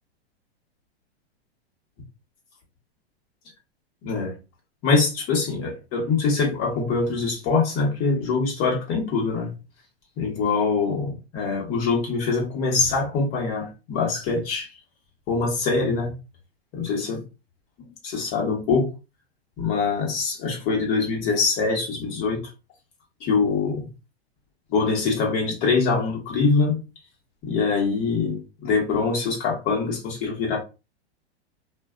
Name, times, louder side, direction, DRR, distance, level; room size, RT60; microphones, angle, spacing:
voice 1, 4.0-4.3 4.8-9.5 10.2-14.7 15.3-16.1 16.7-17.2 18.0-18.9 19.6-22.4 23.2-23.9 24.7-26.8 27.4-30.6, left 4 dB, 40° left, 1.1 m, -24 dB
2.5 x 2.3 x 2.3 m
hypercardioid pair, 120°, 33 cm